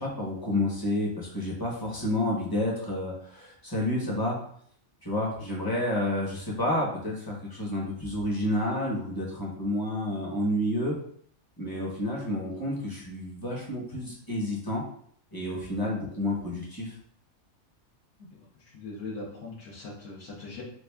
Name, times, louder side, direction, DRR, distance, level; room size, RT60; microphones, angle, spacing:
voice 1, 0.0-4.4 5.0-11.0 11.6-14.8 15.3-16.9, left 1 dB, 20° left, -4 dB, 0.7 m, -30 dB
voice 2, 18.3-20.6, left 3 dB, 70° left, -6 dB, 1.1 m, -41 dB
3.4 x 3.3 x 2.2 m, 0.62 s
omnidirectional pair, 1.5 m